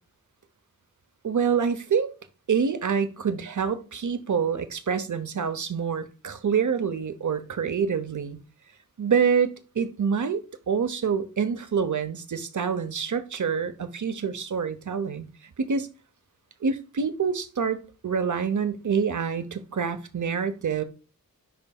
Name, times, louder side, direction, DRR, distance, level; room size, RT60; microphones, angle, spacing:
voice 1, 1.2-2.1 2.5-8.4 9.0-10.4 10.7-15.3 15.6-15.9 16.6-20.8, right 6 dB, 55° right, 0.9 m, -26 dB
11.0 x 4.0 x 2.4 m
wide cardioid pair, 65°, 36 cm